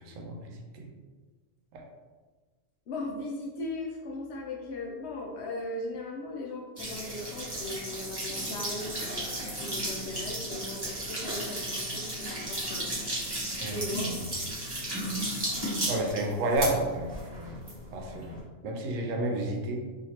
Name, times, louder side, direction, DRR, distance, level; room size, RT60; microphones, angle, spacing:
voice 1, 2.9-9.3 9.6-13.0 13.6-14.1, left 2 dB, 65° left, 0 dB, 0.8 m, -38 dB
sound 1, 6.8-18.4, right 1 dB, 20° right, 0.8 m, -34 dB
voice 2, 13.6-14.2 15.9-17.5 17.9-18.3 18.6-19.8, right 1 dB, 75° right, 2 dB, 1.0 m, -31 dB
3.0 x 2.8 x 2.8 m, 1.4 s
omnidirectional pair, 1.4 m